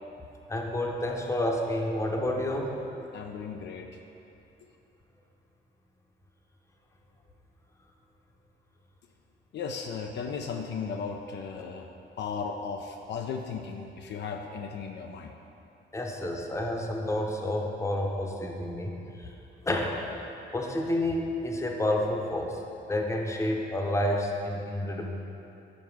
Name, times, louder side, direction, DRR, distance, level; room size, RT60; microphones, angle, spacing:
voice 1, 0.5-2.8 11.6-11.7 15.9-18.9 19.6-20.0 20.5-22.6 22.9-25.1, left 1 dB, 15° left, 1 dB, 0.8 m, -29 dB
voice 2, 3.1-3.9 9.5-11.9 12.2-15.3, left 5 dB, 60° left, 3 dB, 0.4 m, -36 dB
5.2 x 4.4 x 5.9 m, 2.9 s
cardioid pair, 90°, 20 cm